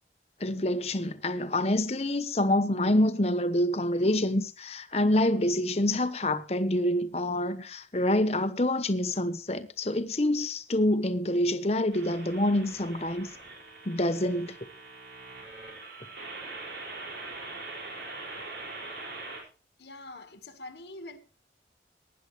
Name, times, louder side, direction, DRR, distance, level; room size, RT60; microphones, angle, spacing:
voice 1, 0.4-13.3 13.8-14.6, left 1 dB, 35° left, 1.0 m, -26 dB
sound 1, 11.9-19.4, right 3 dB, 70° right, 5.7 m, -42 dB
voice 2, 19.8-21.2, left 2 dB, 75° left, 1.6 m, -44 dB
19.5 x 9.9 x 3.2 m
head